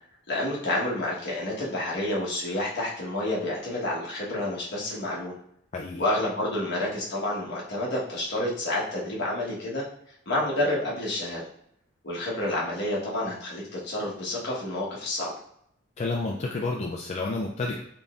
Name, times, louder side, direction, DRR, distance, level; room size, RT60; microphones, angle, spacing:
voice 1, 0.3-5.4 6.0-9.8 10.3-11.4 12.0-15.3, left 1 dB, 60° left, -4 dB, 1.2 m, -29 dB
voice 2, 5.7-6.0 16.0-17.8, left 3 dB, 35° left, -1 dB, 0.4 m, -30 dB
3.9 x 3.4 x 2.4 m, 0.71 s
head